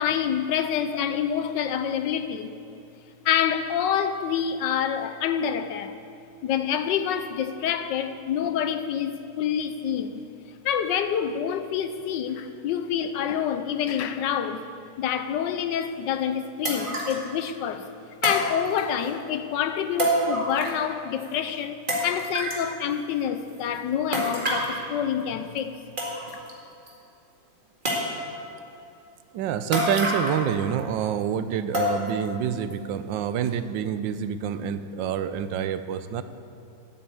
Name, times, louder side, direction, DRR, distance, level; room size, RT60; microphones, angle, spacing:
voice 1, 0.0-2.6 3.2-5.9 6.4-10.3 10.6-14.7 15.0-17.9 18.2-25.7 26.3-26.4, left 8 dB, 80° left, 1.4 m, -27 dB
sound 1, 15.8-15.9 16.6-17.3 18.2-19.1 20.0-20.9 21.2-21.3 21.9-22.7 24.1-24.8 25.6-25.7 26.0-26.5 26.9-27.0 27.8-28.4 29.7-30.5 30.8-30.9 31.7-32.3 32.7-32.8 33.4-33.5, equal, 30° right, 2.1 m, -27 dB
voice 2, 29.3-36.2, right 8 dB, 90° right, 1.4 m, -27 dB
11.0 x 8.8 x 8.3 m
omnidirectional pair, 1.9 m